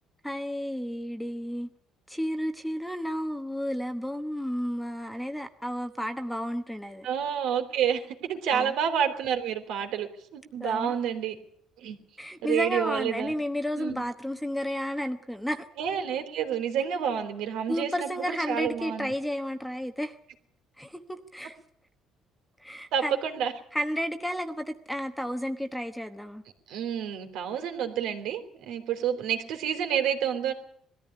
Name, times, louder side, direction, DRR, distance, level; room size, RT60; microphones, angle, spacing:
voice 1, 0.2-1.7 2.1-7.1 8.5-8.7 10.6-10.9 12.2-15.7 17.7-20.2 20.8-21.6 22.6-23.2 23.7-26.4, equal, ahead, 8 dB, 1.1 m, -32 dB
voice 2, 7.0-11.4 11.8-12.0 12.4-13.3 13.8-14.0 15.8-19.1 22.9-23.5 26.7-30.5, right 8 dB, 70° right, 7 dB, 3.3 m, -29 dB
21.0 x 14.0 x 10.0 m, 0.65 s
cardioid pair, 165°, 0 cm